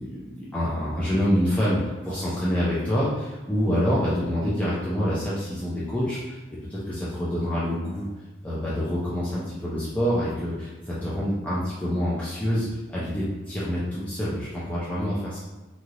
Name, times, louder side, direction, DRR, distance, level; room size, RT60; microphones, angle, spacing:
voice 1, 0.0-6.4 6.7-8.1 8.4-15.4, equal, 5° left, -9 dB, 0.4 m, -26 dB
3.1 x 2.7 x 2.5 m, 1.2 s
head